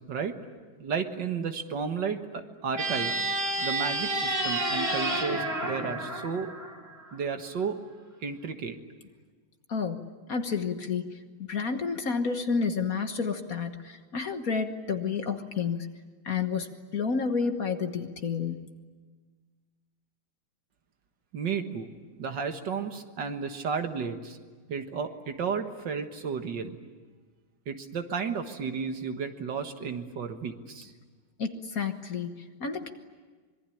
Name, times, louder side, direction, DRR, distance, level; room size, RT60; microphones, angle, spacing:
voice 1, 0.8-3.1 3.6-6.5 7.1-7.8 8.2-8.8 21.3-21.9 22.2-24.4 24.7-26.8 27.7-30.9, right 6 dB, 60° right, 7 dB, 2.1 m, -33 dB
sound 1, 2.7-7.2, right 1 dB, 35° right, 3.5 m, -30 dB
voice 2, 9.7-11.1 11.5-15.9 16.2-18.7 31.4-32.9, left 5 dB, 50° left, 7 dB, 1.6 m, -30 dB
25.5 x 23.0 x 9.9 m, 1.4 s
omnidirectional pair, 2.2 m